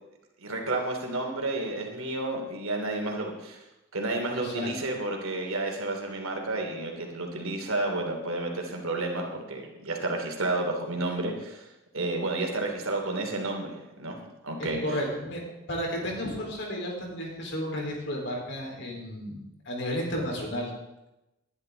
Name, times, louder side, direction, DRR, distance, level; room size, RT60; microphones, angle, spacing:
voice 1, 0.4-3.6 3.9-11.7 11.9-14.2 14.4-15.0, right 2 dB, 85° right, 2 dB, 2.9 m, -31 dB
voice 2, 4.3-4.7 14.6-15.4 15.7-20.7, equal, 55° left, -1 dB, 4.3 m, -33 dB
20.0 x 11.0 x 4.0 m, 0.95 s
head